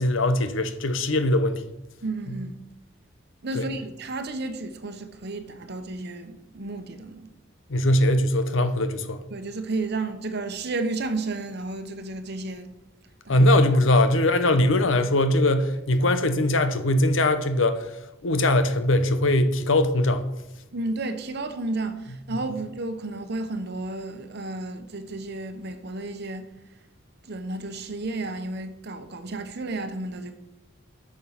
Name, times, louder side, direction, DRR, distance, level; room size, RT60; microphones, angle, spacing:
voice 1, 0.0-1.6 2.3-2.4 3.5-3.7 7.7-9.2 13.3-17.9 18.2-20.2, left 1 dB, 70° left, 0.8 m, -21 dB
voice 2, 2.0-2.6 3.4-7.3 9.3-12.7 13.2-13.5 20.7-26.4 27.2-30.3, right 2 dB, 55° right, 1.0 m, -32 dB
9.1 x 6.4 x 5.7 m
head